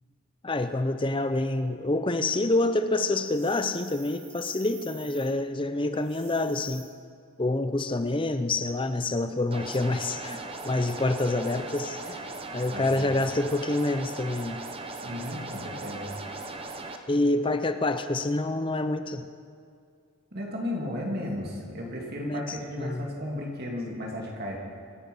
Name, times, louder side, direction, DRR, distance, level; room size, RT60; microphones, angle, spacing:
voice 1, 0.4-6.9 7.4-12.2 12.5-14.6 17.1-19.3 22.2-23.1, left 2 dB, 25° left, 10 dB, 0.6 m, -27 dB
sound 1, 3.2-5.3 5.9-6.8, right 6 dB, 90° right, 4.2 m, -50 dB
sound 2, 9.5-17.0, right 3 dB, 25° right, 0.8 m, -38 dB
voice 2, 12.7-13.1 15.0-16.1 20.3-24.6, left 1 dB, 45° right, -1 dB, 2.5 m, -34 dB
25.5 x 9.0 x 5.4 m, 2.3 s
head